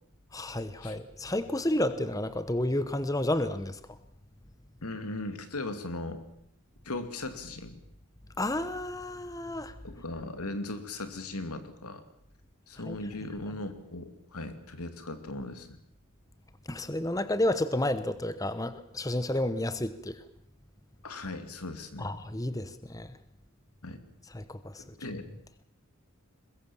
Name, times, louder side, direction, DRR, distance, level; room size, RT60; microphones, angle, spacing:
voice 1, 0.3-3.8 8.4-9.7 12.9-13.0 16.7-20.2 22.0-23.1 24.3-24.8, left 1 dB, 15° left, 13 dB, 0.9 m, -31 dB
voice 2, 4.8-6.2 6.8-7.8 9.8-12.0 12.7-15.8 21.0-22.1 23.8-24.0 24.8-25.3, left 2 dB, 85° left, 9 dB, 2.5 m, -38 dB
22.5 x 21.0 x 7.2 m, 0.71 s
head